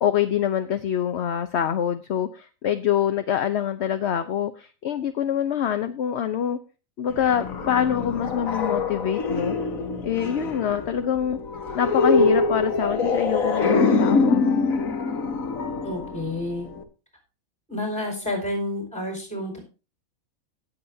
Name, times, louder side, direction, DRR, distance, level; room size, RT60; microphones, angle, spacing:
voice 1, 0.0-6.6 7.0-9.6 10.0-11.4 11.7-14.5, left 9 dB, 60° left, 9 dB, 0.9 m, -25 dB
sound 1, 7.1-16.8, left 3 dB, 90° left, 1.7 m, -24 dB
voice 2, 15.8-16.7 17.7-19.6, left 1 dB, 5° left, 1 dB, 4.7 m, -29 dB
17.5 x 7.8 x 2.7 m, 0.32 s
omnidirectional pair, 1.4 m